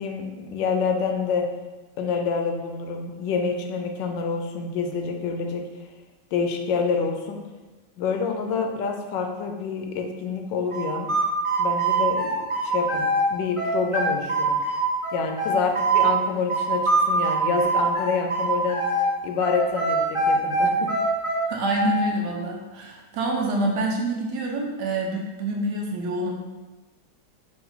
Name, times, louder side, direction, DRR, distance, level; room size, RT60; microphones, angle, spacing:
voice 1, 0.0-1.5 2.0-5.7 6.3-7.4 8.0-11.1 11.6-12.3 12.6-14.6 15.1-18.8 19.2-20.9, left 5 dB, 85° left, 3 dB, 1.3 m, -27 dB
sound 1, 10.7-13.2 13.6-16.1 16.5-19.1 19.4-22.0, right 2 dB, 35° right, 0.5 m, -23 dB
voice 2, 21.5-26.3, right 1 dB, 70° right, 0 dB, 1.2 m, -27 dB
4.9 x 2.6 x 4.0 m, 1.2 s
omnidirectional pair, 1.9 m